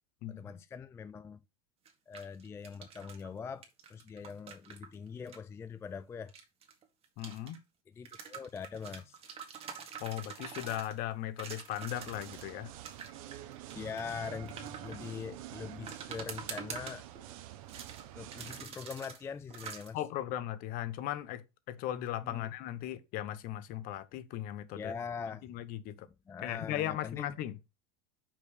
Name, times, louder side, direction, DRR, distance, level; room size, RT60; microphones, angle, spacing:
voice 1, 0.3-1.4 2.1-6.3 8.0-9.2 13.7-17.1 18.1-20.0 22.2-22.5 24.8-25.5 26.3-27.3, left 6 dB, 15° left, 0.3 m, -42 dB
sound 1, 1.8-3.3 3.6-5.4 6.3-7.6 8.0-11.0 11.4-12.5 12.8-15.2 15.9-17.3 17.7-18.0 18.3-19.2 19.5-19.9, right 7 dB, 30° right, 1.8 m, -46 dB
voice 2, 7.2-7.6 10.0-12.7 19.9-24.9 25.4-26.1 26.4-27.6, left 13 dB, 50° left, 0.9 m, -37 dB
sound 2, 11.9-18.6, right 13 dB, 65° right, 1.0 m, -47 dB
5.8 x 4.5 x 4.9 m
supercardioid pair, 115°, 19 cm